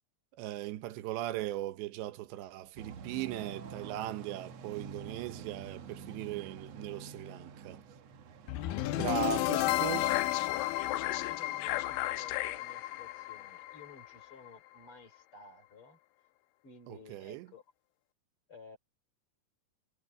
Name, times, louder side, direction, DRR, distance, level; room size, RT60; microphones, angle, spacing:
voice 1, 0.3-7.8 9.0-10.2 16.9-17.5, right 14 dB, 90° right, 3.3 m, -38 dB
sound 1, 2.8-9.3, right 6 dB, 65° right, 1.7 m, -47 dB
sound 2, 8.5-14.5, left 16 dB, 85° left, 2.1 m, -32 dB
voice 2, 8.7-9.3 9.8-10.2 10.9-16.0 16.6-17.6 18.5-18.8, left 5 dB, 35° left, 3.6 m, -53 dB
omnidirectional pair, 4.9 m